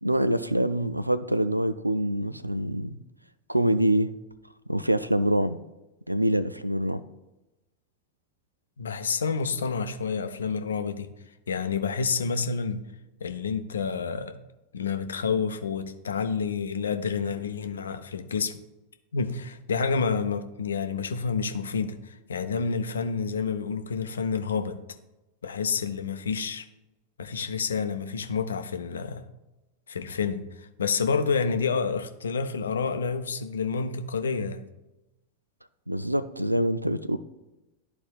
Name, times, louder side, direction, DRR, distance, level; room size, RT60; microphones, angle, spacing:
voice 1, 0.0-3.0 3.5-4.1 4.7-5.6 6.1-7.0 35.9-37.2, right 1 dB, 90° right, 13 dB, 0.3 m, -25 dB
voice 2, 8.8-11.1 11.5-12.8 13.2-14.3 14.7-18.6 19.1-24.8 25.4-26.6 27.2-29.2 29.9-34.6, left 5 dB, 70° left, 8 dB, 0.6 m, -29 dB
12.5 x 4.2 x 2.4 m, 0.99 s
figure-of-eight pair, 90°, 0 cm